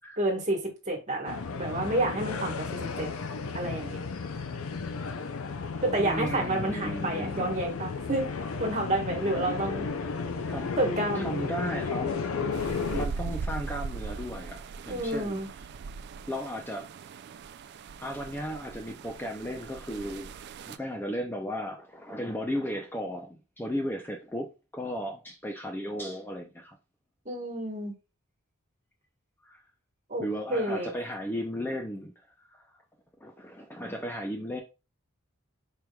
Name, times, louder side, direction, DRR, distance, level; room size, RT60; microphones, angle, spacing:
voice 1, 0.2-0.6 0.9-3.1 3.5-4.0 5.8-8.3 8.6-9.9 10.8-11.3 14.9-15.5 27.2-27.9 30.1-30.9, right 1 dB, 35° right, 1.4 m, -29 dB
sound 1, 1.3-13.1, left 4 dB, 70° left, 0.6 m, -33 dB
voice 2, 6.0-7.5 10.4-10.7 11.1-12.1 12.9-15.4 16.3-16.9 18.0-26.8 29.4-29.6 30.2-32.1 32.5-32.6 33.2-34.6, equal, 10° left, 0.5 m, -35 dB
sound 2, 12.5-20.8, right 5 dB, 50° right, 0.3 m, -40 dB
5.0 x 4.6 x 2.3 m
head